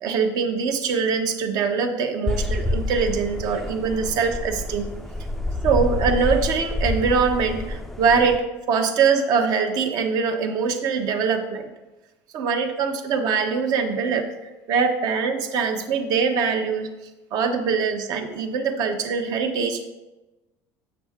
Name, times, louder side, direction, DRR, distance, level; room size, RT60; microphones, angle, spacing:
voice 1, 0.0-4.9 5.6-11.7 12.3-14.2 14.7-16.9 17.3-19.9, right 5 dB, 55° right, 6 dB, 1.0 m, -23 dB
sound 1, 2.3-8.4, left 2 dB, ahead, 0.4 m, -28 dB
7.1 x 7.1 x 3.6 m, 1.1 s
cardioid pair, 140°, 8 cm